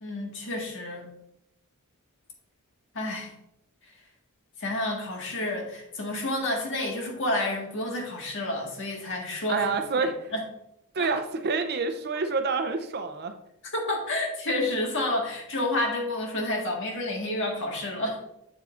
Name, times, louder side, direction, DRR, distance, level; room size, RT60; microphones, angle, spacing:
voice 1, 0.0-1.1 2.9-3.3 3.8-3.9 4.6-9.7 10.0-10.4 11.0-11.1 13.6-18.2, left 1 dB, 60° left, 0 dB, 1.7 m, -30 dB
voice 2, 9.5-10.2 10.9-13.3, right 4 dB, 45° right, 8 dB, 0.6 m, -27 dB
7.4 x 7.2 x 2.5 m, 0.81 s
head